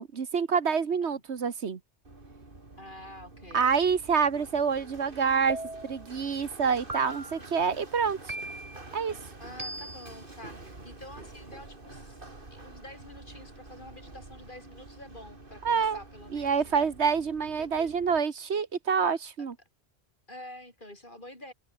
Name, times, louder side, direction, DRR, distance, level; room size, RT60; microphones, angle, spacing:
voice 1, 0.0-1.8 3.5-5.6 5.8-8.3 8.9-9.1 15.6-16.0 16.3-19.5, right 6 dB, 80° right, 1.7 m, -27 dB
Run, 2.0-18.2, right 2 dB, 50° right, 3.4 m, -48 dB
voice 2, 2.8-3.7 4.1-4.3 9.4-12.2 12.5-16.9 17.6-17.9 20.3-21.5, left 1 dB, 50° left, 7.7 m, -48 dB
sound 1, 5.5-6.1 6.9-7.5 8.3-8.9 9.6-10.2, right 1 dB, 35° right, 3.5 m, -38 dB
omnidirectional pair, 1.1 m